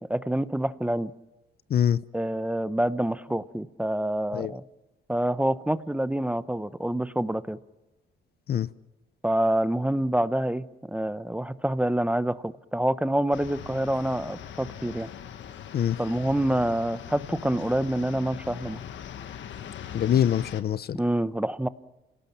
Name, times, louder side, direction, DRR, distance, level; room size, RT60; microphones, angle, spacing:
voice 1, 0.1-1.1 2.1-4.6 5.1-7.6 9.2-15.1 16.0-18.8 20.9-21.7, right 1 dB, 5° right, 0.8 m, -27 dB
sound 1, 13.3-20.6, left 9 dB, 70° left, 1.5 m, -41 dB
voice 2, 19.9-21.0, left 9 dB, 50° left, 0.7 m, -24 dB
28.5 x 18.0 x 7.3 m
cardioid pair, 90°, 20 cm